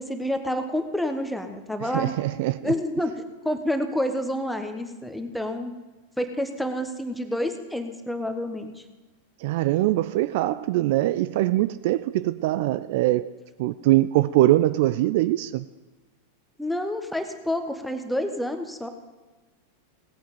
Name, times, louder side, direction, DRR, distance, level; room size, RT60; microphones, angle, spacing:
voice 1, 0.0-2.1 2.6-5.7 6.2-8.8 16.6-18.9, left 1 dB, ahead, 6 dB, 1.2 m, -28 dB
voice 2, 1.8-2.7 9.4-13.3 13.6-15.7, right 16 dB, 50° right, 14 dB, 0.3 m, -22 dB
18.0 x 8.5 x 5.2 m, 1.2 s
figure-of-eight pair, 90°, 0 cm